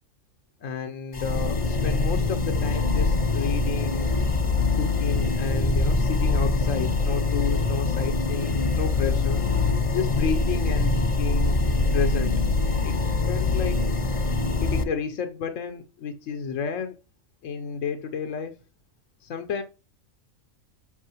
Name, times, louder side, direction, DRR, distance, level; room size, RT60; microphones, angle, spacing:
voice 1, 0.6-4.1 4.7-9.4 9.9-11.6 11.9-12.3 12.8-13.8 14.6-17.0 17.4-18.6 19.2-19.6, left 5 dB, 65° left, 1.1 m, -31 dB
sound 1, 1.1-14.8, left 3 dB, 40° left, 0.4 m, -24 dB
8.4 x 6.2 x 2.9 m
omnidirectional pair, 1.5 m